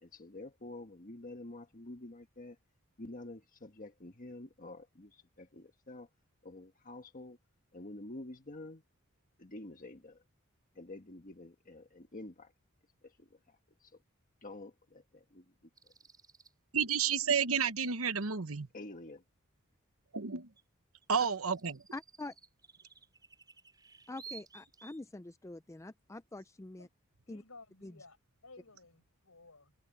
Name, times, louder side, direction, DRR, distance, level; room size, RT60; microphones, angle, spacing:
voice 1, 0.0-2.6 3.0-6.1 6.4-7.4 7.7-8.8 9.4-10.2 10.7-12.5 13.0-13.9 14.4-15.4 15.8-15.9 18.7-19.2, left 2 dB, 40° left, 1.5 m, -48 dB
sound 1, 15.8-16.5 20.6-20.7 21.0-25.1, right 6 dB, 20° right, 4.3 m, -55 dB
voice 2, 16.7-18.7 20.1-20.5 21.1-21.7, right 6 dB, 75° right, 1.1 m, -31 dB
voice 3, 21.9-22.3 24.1-26.9 27.3-27.4 27.8-27.9, left 2 dB, 15° left, 0.4 m, -45 dB
voice 4, 27.3-28.2 28.4-29.7, left 3 dB, 75° left, 7.2 m, -56 dB
head